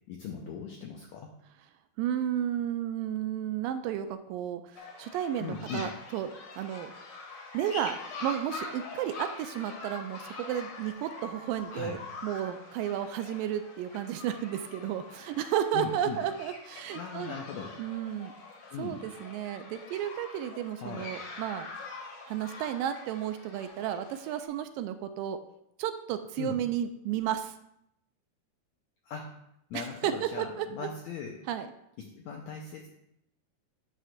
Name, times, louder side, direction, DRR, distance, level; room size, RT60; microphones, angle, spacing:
voice 1, 0.1-1.3 5.4-5.9 11.7-12.0 15.7-16.2 16.9-17.7 18.7-19.0 20.8-21.1 26.4-26.6 29.0-29.3 29.7-31.4 32.0-32.9, left 6 dB, 80° left, 1 dB, 1.6 m, -39 dB
voice 2, 2.0-6.3 6.6-6.9 7.5-17.3 17.8-18.3 18.8-21.7 22.3-25.4 25.8-27.5 29.7-30.9 31.5-31.7, right 10 dB, 80° right, 9 dB, 2.1 m, -33 dB
sound 1, 4.7-24.4, left 3 dB, 60° left, 1.4 m, -44 dB
9.4 x 3.3 x 6.4 m, 0.78 s
omnidirectional pair, 4.1 m